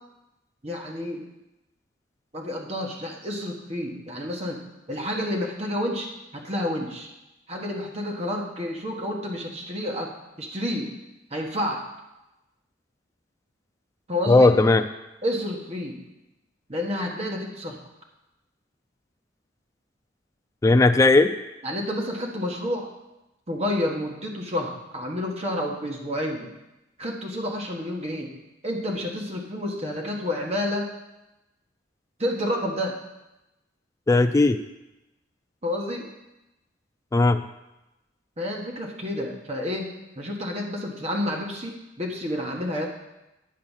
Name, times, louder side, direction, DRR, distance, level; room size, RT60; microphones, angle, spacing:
voice 1, 0.6-1.2 2.3-4.6 4.9-7.1 7.5-10.9 11.3-11.8 14.1-14.5 15.2-16.0 16.7-17.8 21.6-22.9 23.5-26.5 27.0-28.3 28.6-30.9 32.2-33.0 35.6-36.1 38.4-42.9, left 1 dB, 35° right, 0 dB, 1.5 m, -29 dB
voice 2, 14.3-14.8 20.6-21.3 34.1-34.6 37.1-37.4, left 2 dB, 15° left, 7 dB, 0.3 m, -17 dB
9.9 x 4.9 x 7.4 m, 0.97 s
head